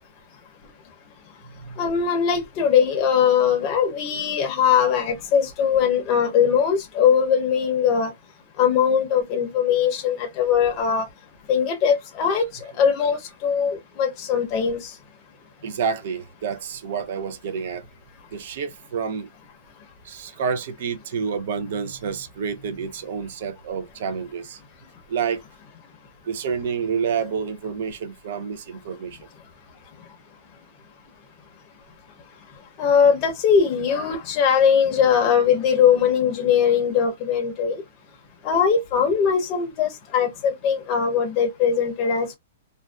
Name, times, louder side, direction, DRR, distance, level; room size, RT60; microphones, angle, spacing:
voice 1, 1.8-8.1 8.6-11.1 11.5-14.9 32.8-37.8 38.4-42.4, left 7 dB, 25° left, 0.6 m, -20 dB
voice 2, 15.6-17.9 18.3-19.3 20.0-24.6 25.1-25.4 26.2-29.2, right 6 dB, 50° right, 0.5 m, -29 dB
2.5 x 2.2 x 2.2 m
hypercardioid pair, 170°, 0 cm